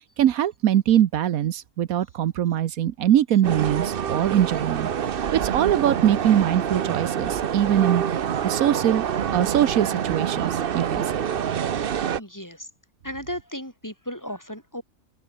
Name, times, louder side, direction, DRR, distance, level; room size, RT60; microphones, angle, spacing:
voice 1, 0.2-4.9 5.3-8.0 8.4-9.0 9.3-11.3, right 11 dB, 80° right, 1.3 m, -22 dB
sound 1, 3.4-12.2, right 8 dB, 50° right, 0.8 m, -26 dB
voice 2, 12.0-12.7 13.0-14.8, equal, 10° left, 5.2 m, -35 dB
open air
omnidirectional pair, 1.5 m